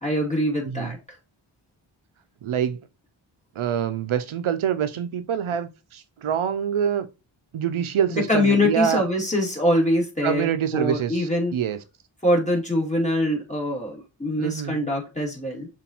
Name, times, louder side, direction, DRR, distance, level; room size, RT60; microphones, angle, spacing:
voice 1, 0.0-1.0 8.3-11.5 12.2-15.7, left 1 dB, 15° left, 2.3 m, -23 dB
voice 2, 0.7-1.0 2.4-2.8 3.6-7.1 7.5-9.0 10.2-11.8 14.4-14.9, right 8 dB, 75° right, 0.5 m, -25 dB
6.9 x 2.6 x 2.8 m
wide cardioid pair, 55°, 50 cm